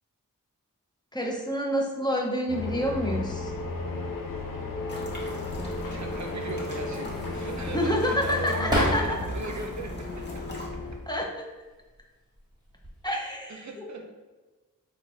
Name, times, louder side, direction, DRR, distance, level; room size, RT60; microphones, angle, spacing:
voice 1, 1.1-3.5 7.7-9.2 11.1-11.5 13.0-13.8, equal, 10° left, -1 dB, 0.7 m, -28 dB
sound 1, 2.5-11.0, left 3 dB, 65° left, 0.6 m, -34 dB
sound 2, 4.9-10.7, left 1 dB, 30° left, 1.0 m, -41 dB
voice 2, 5.9-10.6 13.5-14.1, right 3 dB, 55° right, 2 dB, 0.6 m, -38 dB
sound 3, 7.0-9.5 9.9-10.7 11.7-12.0 12.3-13.1, equal, 10° right, 1.2 m, -33 dB
4.0 x 2.7 x 3.1 m, 1.2 s
cardioid pair, 40°, 35 cm